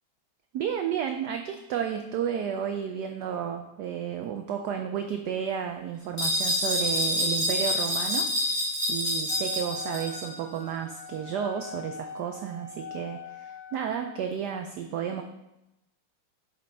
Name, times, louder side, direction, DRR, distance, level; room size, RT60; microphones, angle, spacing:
voice 1, 0.5-8.6 8.9-15.2, right 8 dB, 85° right, 5 dB, 0.9 m, -32 dB
sound 1, 6.2-10.3, left 1 dB, 45° left, 3.0 m, -27 dB
Wind instrument woodwind instrument, 9.3-14.3, left 4 dB, 85° left, 0.4 m, -43 dB
7.5 x 5.2 x 3.9 m, 0.92 s
omnidirectional pair, 2.3 m